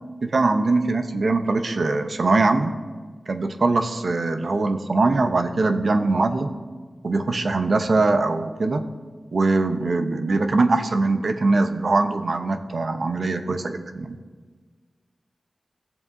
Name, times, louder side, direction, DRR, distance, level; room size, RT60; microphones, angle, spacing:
voice 1, 0.2-2.7 3.3-6.5 7.0-8.8 9.3-14.2, right 3 dB, 65° right, 7 dB, 0.7 m, -22 dB
17.0 x 7.2 x 2.7 m, 1.5 s
wide cardioid pair, 65°, 0 cm